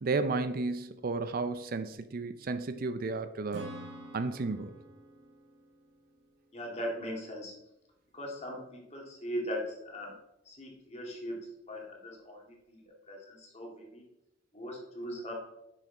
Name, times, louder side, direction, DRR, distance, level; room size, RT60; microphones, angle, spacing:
voice 1, 0.0-3.8 4.1-4.7, right 3 dB, 50° right, 10 dB, 0.5 m, -33 dB
Acoustic guitar / Strum, 3.5-7.1, right 1 dB, 75° right, 1.6 m, -48 dB
voice 2, 6.5-7.5 8.1-10.1 10.5-14.0 14.5-15.3, equal, 35° left, -1 dB, 2.1 m, -40 dB
9.7 x 6.4 x 3.8 m, 0.90 s
head